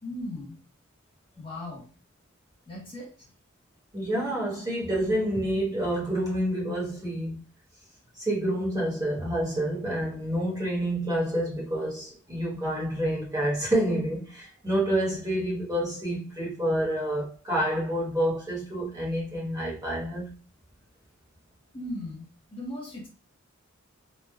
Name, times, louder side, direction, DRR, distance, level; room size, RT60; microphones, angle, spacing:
voice 1, 0.0-0.6 1.4-1.9 2.7-3.1 21.7-23.1, left 1 dB, 25° left, 0.8 m, -37 dB
voice 2, 3.9-7.4 8.2-20.3, right 1 dB, 15° right, 1.1 m, -28 dB
3.1 x 2.2 x 2.2 m
head